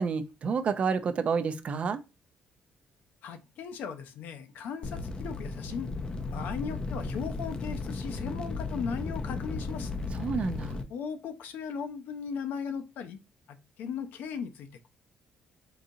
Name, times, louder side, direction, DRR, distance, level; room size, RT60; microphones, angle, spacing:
voice 1, 0.0-2.0 10.1-10.8, right 5 dB, 45° right, 0.4 m, -29 dB
voice 2, 3.2-5.9 6.3-9.9 10.9-13.2 13.5-14.9, left 6 dB, 80° left, 0.5 m, -37 dB
sound 1, 4.8-10.8, left 3 dB, 30° left, 0.4 m, -35 dB
3.8 x 2.8 x 2.6 m
cardioid pair, 115°, 3 cm